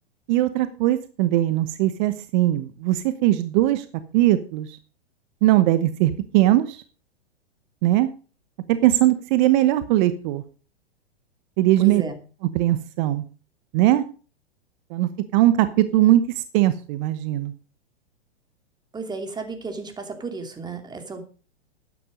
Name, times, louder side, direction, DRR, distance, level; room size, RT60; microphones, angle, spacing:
voice 1, 0.3-3.8 4.1-4.8 5.4-6.8 7.8-8.1 8.7-10.4 11.6-12.0 12.5-13.2 13.7-14.0 14.9-17.5, right 14 dB, 45° right, 12 dB, 1.0 m, -20 dB
voice 2, 11.8-12.2 18.9-21.2, right 4 dB, 10° right, 6 dB, 2.7 m, -33 dB
12.0 x 9.7 x 5.2 m, 0.38 s
hypercardioid pair, 110°, 33 cm